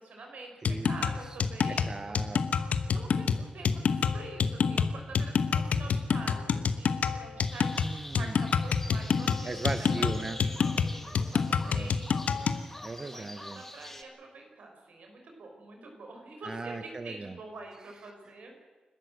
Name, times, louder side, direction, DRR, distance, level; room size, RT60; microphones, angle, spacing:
voice 1, 0.0-2.2 2.9-7.9 8.1-10.1 10.4-12.5 13.0-18.5, right 3 dB, 80° right, 3 dB, 5.8 m, -46 dB
sound 1, 0.6-12.6, left 6 dB, 75° left, 1.2 m, -27 dB
voice 2, 0.6-1.1 1.7-2.6 7.8-8.4 9.4-10.4 11.7-12.0 12.8-13.6 16.5-17.4, right 3 dB, 30° right, 9 dB, 0.8 m, -38 dB
sound 2, 7.4-14.0, left 1 dB, 10° left, 1.6 m, -46 dB
29.0 x 13.0 x 7.8 m, 1.3 s
wide cardioid pair, 175°, 2 cm